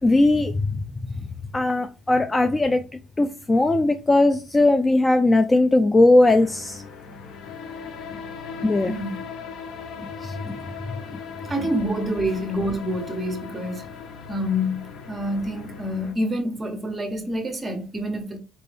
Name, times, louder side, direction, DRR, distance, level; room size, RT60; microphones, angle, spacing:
voice 1, 0.0-0.8 1.5-2.8 3.2-6.8 8.6-8.9 10.2-10.6, left 2 dB, 20° left, 0.3 m, -19 dB
sound 1, 6.2-16.1, left 5 dB, 65° left, 0.9 m, -38 dB
voice 2, 8.9-9.2 11.5-13.8 14.3-18.4, equal, 20° right, 1.2 m, -27 dB
4.4 x 2.6 x 3.4 m
cardioid pair, 110°, 0 cm